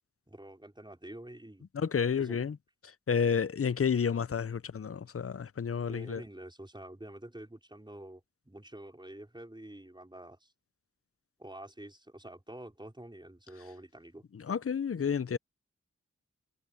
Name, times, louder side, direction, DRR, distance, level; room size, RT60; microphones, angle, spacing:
voice 1, 0.3-1.7 2.1-2.4 5.9-10.5 11.4-14.2 14.9-15.1, right 1 dB, 15° right, 4.6 m, -48 dB
voice 2, 1.7-2.6 3.1-6.2 14.3-15.4, left 6 dB, 50° left, 0.6 m, -30 dB
cardioid pair, 45°, 30 cm